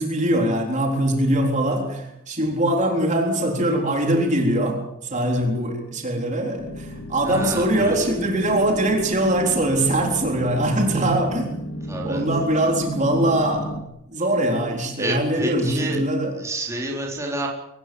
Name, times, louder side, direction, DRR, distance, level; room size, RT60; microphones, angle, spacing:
voice 1, 0.0-11.6 12.0-13.7 14.1-16.3, right 1 dB, 35° right, 2 dB, 3.9 m, -22 dB
sound 1, 6.6-13.8, equal, 70° left, 2.9 m, -33 dB
voice 2, 7.2-7.9 11.9-12.3 15.0-16.0 16.4-17.5, right 1 dB, 15° right, -2 dB, 4.2 m, -28 dB
24.5 x 19.5 x 7.9 m, 0.84 s
head